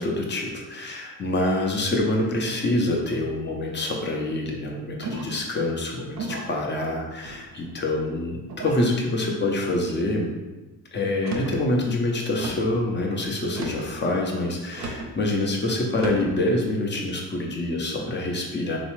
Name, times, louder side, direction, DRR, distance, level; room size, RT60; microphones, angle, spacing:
voice 1, 0.0-10.3 10.9-18.8, left 1 dB, 30° left, 0 dB, 0.7 m, -26 dB
sound 1, 5.0-5.5 6.1-6.6 7.2-7.8 8.5-8.9 9.6-10.0 11.1-11.6 12.4-12.8 13.5-13.9 14.7-15.1 15.9-16.3, right 2 dB, 50° right, 0.6 m, -34 dB
3.2 x 2.0 x 3.1 m, 1.2 s
supercardioid pair, 65°, 37 cm